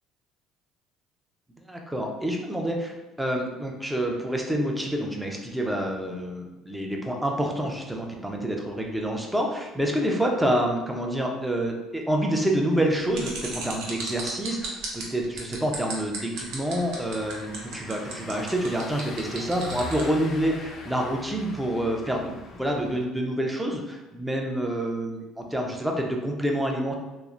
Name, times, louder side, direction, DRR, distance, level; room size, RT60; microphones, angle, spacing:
voice 1, 1.7-27.0, right 1 dB, 5° right, 1 dB, 0.5 m, -27 dB
sound 1, 13.1-20.1, right 4 dB, 80° right, 0.6 m, -36 dB
Car passing by / Engine, 16.3-23.1, left 2 dB, 50° left, 0.5 m, -42 dB
3.1 x 2.0 x 2.4 m, 1.1 s
supercardioid pair, 90°, 0 cm